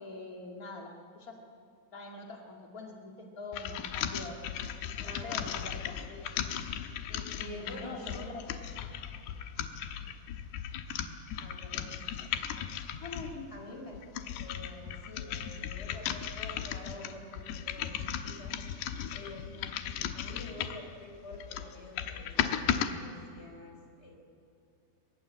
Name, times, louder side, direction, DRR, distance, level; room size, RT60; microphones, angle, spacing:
voice 1, 0.0-1.4 1.9-4.4 5.0-5.9 7.1-8.3 8.9-9.2 11.7-11.8 13.0-13.5, left 3 dB, 60° left, 0 dB, 0.9 m, -44 dB
sound 1, 3.5-13.4 13.9-20.9 21.3-22.9, left 9 dB, 75° left, 3.0 m, -36 dB
voice 2, 5.0-6.3 7.3-8.3 11.4-12.0 13.5-14.0 14.3-18.6 19.1-24.2, left 2 dB, 15° left, 1 dB, 4.1 m, -48 dB
23.0 x 21.5 x 8.6 m, 2.6 s
omnidirectional pair, 5.2 m